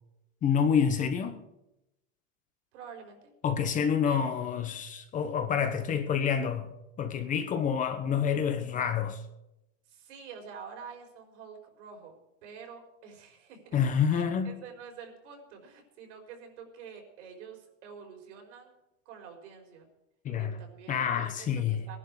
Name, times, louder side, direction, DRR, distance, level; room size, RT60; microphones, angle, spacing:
voice 1, 0.4-1.4 3.4-6.7 7.0-9.2 13.7-14.5 20.2-20.6 20.9-21.9, left 7 dB, 20° left, 1.1 m, -28 dB
voice 2, 2.7-3.3 4.0-4.4 9.9-12.1 12.4-13.8 14.1-18.8 19.0-19.9 20.4-22.0, right 6 dB, 70° right, 4.9 m, -47 dB
19.5 x 11.0 x 4.9 m
supercardioid pair, 165°, 37 cm